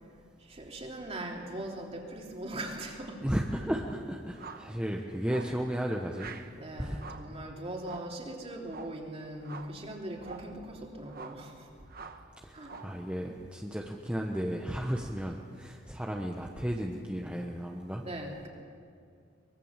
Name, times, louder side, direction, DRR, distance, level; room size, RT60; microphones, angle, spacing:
voice 1, 0.4-3.2 6.5-11.9 12.5-12.7 18.0-18.5, right 1 dB, 30° right, 0 dB, 3.2 m, -40 dB
voice 2, 3.2-6.4 6.8-7.0 12.4-18.0, equal, 5° right, 0 dB, 1.1 m, -34 dB
sound 1, 4.3-4.7 5.3-5.6 6.1-6.5 6.9-7.3 7.8-8.2 8.7-9.0 9.4-9.8 10.2-10.5 11.1-11.5 11.9-12.3 12.6-13.0, right 5 dB, 50° right, 1.3 m, -46 dB
24.0 x 21.5 x 7.4 m, 2.3 s
head